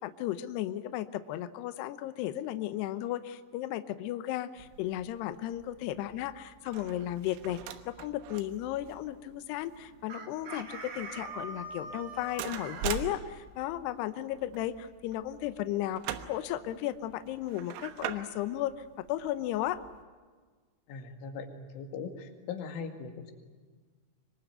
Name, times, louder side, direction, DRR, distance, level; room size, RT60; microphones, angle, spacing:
voice 1, 0.0-19.8, left 13 dB, 85° left, 11 dB, 2.3 m, -35 dB
sound 1, 4.6-20.0, right 10 dB, 85° right, 4.0 m, -44 dB
Chicken rooster, 10.1-13.0, right 2 dB, 40° right, 2.9 m, -42 dB
voice 2, 20.9-23.3, left 5 dB, 70° left, 5 dB, 4.6 m, -40 dB
25.0 x 23.0 x 9.2 m, 1.5 s
omnidirectional pair, 6.0 m